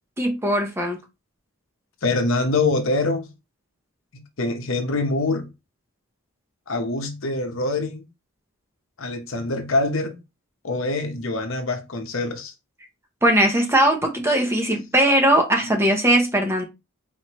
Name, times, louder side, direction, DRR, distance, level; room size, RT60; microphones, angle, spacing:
voice 1, 0.2-1.0 13.2-16.6, right 1 dB, 10° right, 0.7 m, -19 dB
voice 2, 2.0-3.3 4.4-5.5 6.7-8.0 9.0-10.2 10.6-12.5 15.6-15.7, left 2 dB, 65° left, 0.9 m, -24 dB
4.3 x 3.1 x 3.0 m
head